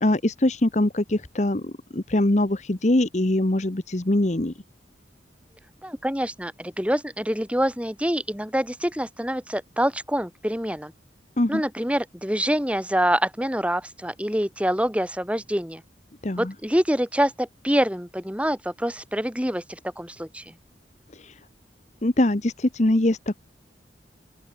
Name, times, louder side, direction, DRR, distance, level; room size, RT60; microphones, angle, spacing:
voice 1, 0.0-4.5 11.4-11.6 16.2-16.5 21.2-21.3 22.0-23.4, left 1 dB, 40° left, 1.1 m, -23 dB
voice 2, 5.8-10.9 11.5-15.8 16.4-20.4, equal, 5° right, 3.7 m, -26 dB
open air
head